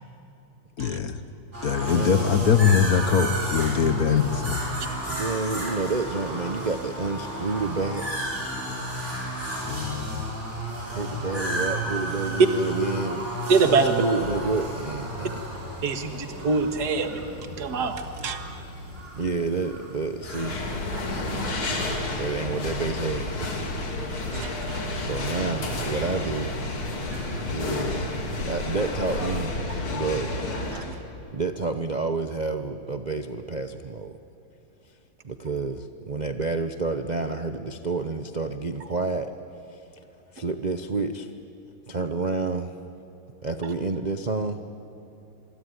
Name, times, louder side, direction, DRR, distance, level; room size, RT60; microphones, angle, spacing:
voice 1, 0.8-1.2 1.6-4.6 9.6-10.3, left 7 dB, 50° left, 10 dB, 1.3 m, -22 dB
sound 1, 1.5-21.3, right 1 dB, 30° right, 6.8 m, -33 dB
voice 2, 1.9-2.4 5.1-8.1 10.9-13.3 13.8-15.4 19.2-20.6 21.2-23.7 25.0-26.5 27.5-28.1 28.4-29.6 29.9-30.4 30.7-30.8 31.3-34.2 35.2-39.3 39.7-39.8 40.3-41.3 41.9-42.8 43.4-44.6, right 3 dB, 85° right, 8 dB, 0.4 m, -29 dB
voice 3, 13.5-14.0 15.8-17.3 17.6-18.6 24.3-24.8 27.1-27.4 30.7-31.0, right 4 dB, 50° right, 7 dB, 2.2 m, -25 dB
sound 2, 14.2-19.0, left 1 dB, 35° left, 5.9 m, -43 dB
sound 3, 20.2-30.9, left 2 dB, 80° left, 3.7 m, -30 dB
26.5 x 23.5 x 9.6 m, 2.9 s
omnidirectional pair, 2.3 m